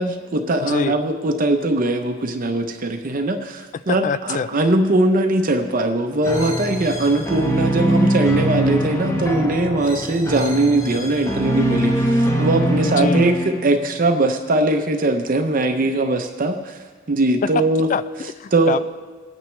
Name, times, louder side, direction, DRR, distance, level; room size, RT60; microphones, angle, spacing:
voice 1, 0.0-16.8 17.1-17.9 18.5-18.8, right 2 dB, 45° right, 5 dB, 0.7 m, -20 dB
voice 2, 0.6-0.9 3.9-4.5 12.8-13.2 17.5-17.6 17.9-18.8, left 5 dB, 40° left, 16 dB, 0.3 m, -24 dB
sound 1, 6.2-13.9, right 1 dB, 15° left, 1.1 m, -22 dB
20.0 x 9.1 x 3.2 m, 1.4 s
head